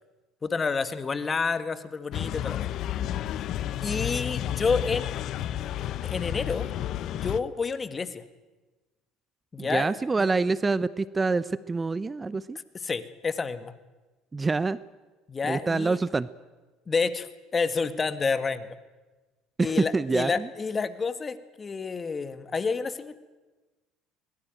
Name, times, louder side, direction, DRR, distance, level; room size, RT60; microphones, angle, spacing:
voice 1, 0.4-2.6 3.8-5.3 6.0-6.7 7.1-8.2 9.5-10.3 12.7-13.7 15.3-16.0 16.9-18.8 19.6-23.1, left 4 dB, 30° left, 12 dB, 1.8 m, -29 dB
sound 1, 2.1-7.4, left 11 dB, 60° left, 1.0 m, -31 dB
voice 2, 9.6-12.6 14.3-14.8 15.5-16.3 19.6-20.5, right 3 dB, 25° right, 17 dB, 0.8 m, -26 dB
22.5 x 20.0 x 9.3 m, 1.2 s
hypercardioid pair, 70°, 0 cm